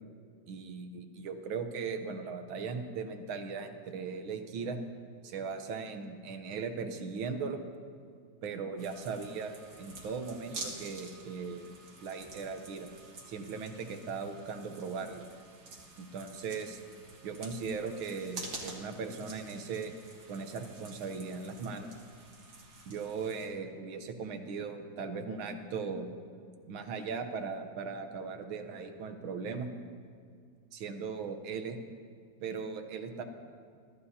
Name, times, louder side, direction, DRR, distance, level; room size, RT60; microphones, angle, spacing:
voice 1, 0.5-4.8 5.2-7.6 8.4-11.7 12.0-12.9 13.3-15.2 16.0-16.8 17.2-19.9 20.3-21.9 22.8-26.1 26.7-29.7 30.7-31.8 32.4-33.2, right 5 dB, 85° right, 7 dB, 1.8 m, -38 dB
sound 1, 8.8-23.5, right 3 dB, 65° right, 2.6 m, -48 dB
23.0 x 14.0 x 2.8 m, 2.1 s
omnidirectional pair, 2.2 m